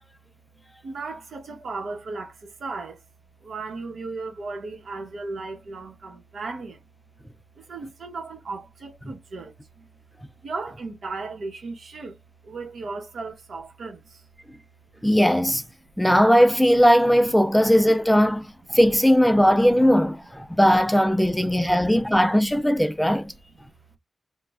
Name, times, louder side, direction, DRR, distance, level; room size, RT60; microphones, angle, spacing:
voice 1, 0.5-3.0 3.4-6.8 7.5-9.9 10.4-12.2 12.4-14.3 14.5-14.6 15.0-15.1 20.5-20.6, right 3 dB, 70° right, 0.9 m, -36 dB
voice 2, 15.0-15.6 16.0-18.4 18.7-23.3, equal, 5° left, 0.3 m, -18 dB
3.1 x 2.2 x 2.3 m
wide cardioid pair, 145°, 0 cm